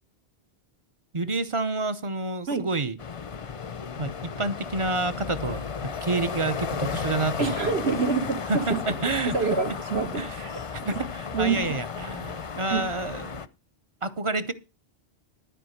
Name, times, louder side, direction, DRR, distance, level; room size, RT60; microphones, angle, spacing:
voice 1, 1.1-3.0 4.0-7.7 8.5-9.3 10.1-10.4 10.7-13.4 14.0-14.5, right 3 dB, 35° right, 0.7 m, -29 dB
sound 1, 3.0-13.5, left 6 dB, 40° left, 0.6 m, -34 dB
voice 2, 7.4-8.8 9.3-10.6 11.3-11.6 12.7-12.8, right 5 dB, 75° right, 1.8 m, -26 dB
12.5 x 4.9 x 7.9 m
omnidirectional pair, 1.1 m